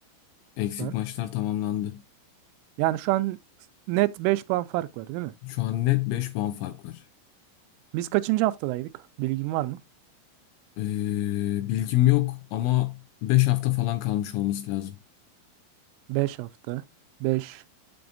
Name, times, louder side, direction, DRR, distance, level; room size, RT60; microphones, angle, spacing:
voice 1, 0.6-2.0 5.4-7.0 10.8-15.0, left 16 dB, 85° left, 2.7 m, -26 dB
voice 2, 2.8-3.4 3.9-5.3 7.9-8.9 9.2-9.8 16.1-16.8 17.2-17.6, right 18 dB, 85° right, 3.0 m, -26 dB
7.7 x 6.9 x 2.6 m
omnidirectional pair, 5.7 m